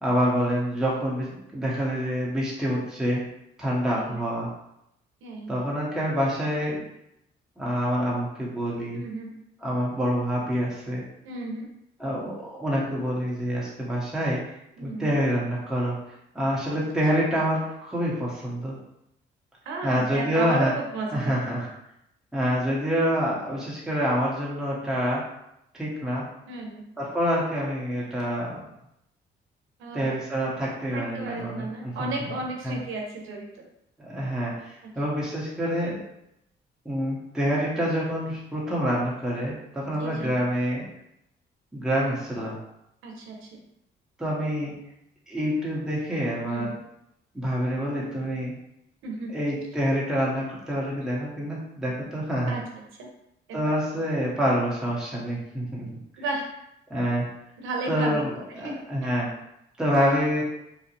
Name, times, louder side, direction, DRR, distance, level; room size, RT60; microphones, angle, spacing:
voice 1, 0.0-3.2 3.6-4.5 5.5-6.8 7.6-9.0 9.6-11.0 12.0-14.4 14.8-16.0 16.3-18.8 19.8-20.7 21.1-21.7 22.3-25.2 25.7-26.2 27.0-28.7 29.9-32.1 32.6-32.8 34.1-36.0 36.8-40.8 41.7-42.6 44.2-44.7 45.3-46.7 47.3-48.5 49.3-52.6 53.5-55.9 56.9-57.3 57.8-59.3 59.8-60.4, equal, 5° right, -6 dB, 0.7 m, -27 dB
voice 2, 3.9-4.3 5.2-5.5 8.9-9.3 11.2-11.7 14.8-15.2 19.7-21.5 26.5-26.8 29.8-30.1 30.9-33.6 40.0-40.3 43.0-43.6 46.5-46.8 49.0-49.4 52.5-52.6 53.0-53.1 53.5-53.6 56.2-56.5 57.6-58.2 58.6-59.1, right 2 dB, 85° right, 0 dB, 0.6 m, -34 dB
2.6 x 2.0 x 2.7 m, 0.81 s
cardioid pair, 90°, 20 cm